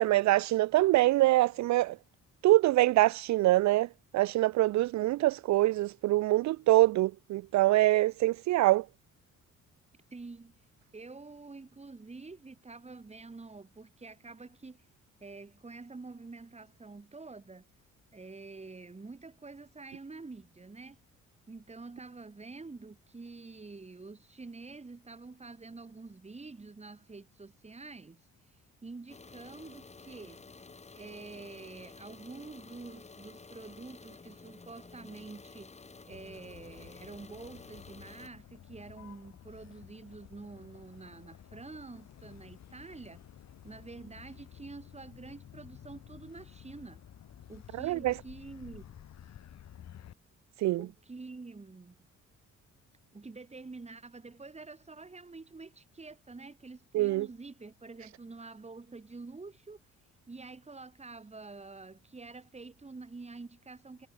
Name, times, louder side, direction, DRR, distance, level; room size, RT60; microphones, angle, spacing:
voice 1, 0.0-2.0 2.4-8.9 47.8-48.1 50.6-50.8 56.9-57.3, right 17 dB, 65° right, 0.5 m, -25 dB
voice 2, 10.1-10.6 10.9-14.8 15.2-17.7 18.1-21.0 21.5-28.2 28.8-30.4 31.0-35.7 36.1-43.2 43.6-47.0 47.5-48.8 50.8-52.0 53.1-59.8 60.3-64.1, right 3 dB, 20° right, 3.1 m, -47 dB
sound 1, 29.1-38.3, left 4 dB, 20° left, 1.4 m, -52 dB
Motor vehicle (road), 36.1-50.1, left 10 dB, 60° left, 2.2 m, -53 dB
cardioid pair, 90°, 30 cm